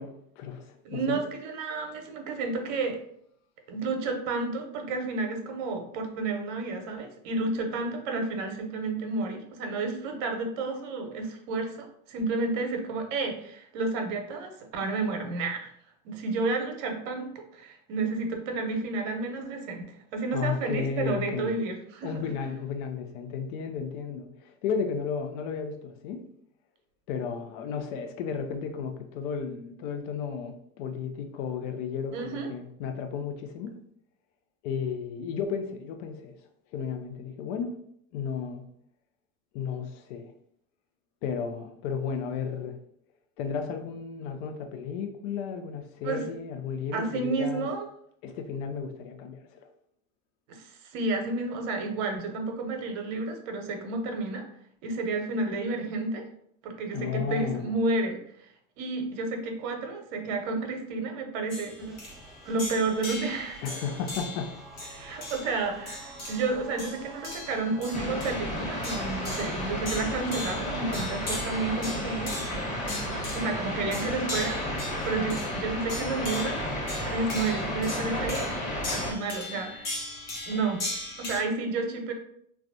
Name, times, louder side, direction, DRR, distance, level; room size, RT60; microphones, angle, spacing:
voice 1, 0.0-1.2 20.3-21.6 22.0-26.2 27.1-33.7 34.6-36.3 36.7-37.8 38.1-38.6 39.5-40.3 41.2-42.8 43.4-47.7 48.2-49.7 56.9-57.7 63.6-64.5 65.0-65.1, left 6 dB, 60° left, 6 dB, 0.6 m, -33 dB
voice 2, 0.8-3.0 3.7-15.7 16.0-22.3 32.1-32.5 46.0-46.2 46.9-47.9 50.5-50.7 50.9-54.4 54.8-56.2 56.6-58.2 58.8-62.0 62.4-63.6 64.9-72.4 73.3-74.6 75.0-76.6 77.0-78.5 78.9-79.9 80.5-80.9 81.2-82.1, right 3 dB, 65° right, 4 dB, 0.8 m, -31 dB
sound 1, 61.5-81.4, left 2 dB, 90° left, 1.1 m, -39 dB
sound 2, 61.8-72.8, right 2 dB, ahead, 0.4 m, -48 dB
sound 3, 67.9-79.1, left 1 dB, 20° left, 1.1 m, -32 dB
3.4 x 2.4 x 2.6 m, 0.69 s
hypercardioid pair, 80°, 40 cm